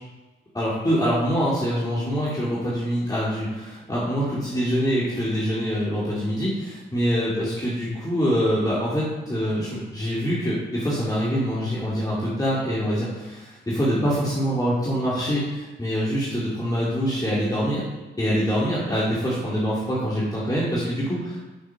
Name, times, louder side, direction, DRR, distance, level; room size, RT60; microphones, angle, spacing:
voice 1, 0.5-17.8 18.2-21.4, equal, 20° left, -8 dB, 2.9 m, -25 dB
7.7 x 6.3 x 5.9 m, 1.2 s
cardioid pair, 70°, 20 cm